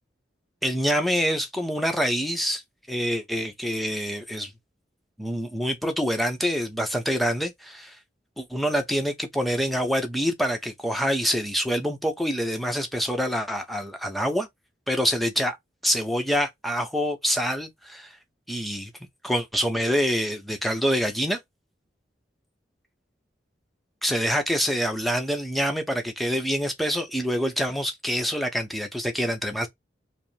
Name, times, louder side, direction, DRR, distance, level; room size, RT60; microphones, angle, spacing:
voice 1, 0.6-2.6 2.9-4.5 5.2-8.0 8.4-14.5 14.9-15.6 15.8-18.1 18.5-18.9 19.2-21.4 24.0-29.7, equal, ahead, 0.7 m, -26 dB
4.9 x 2.1 x 3.3 m
head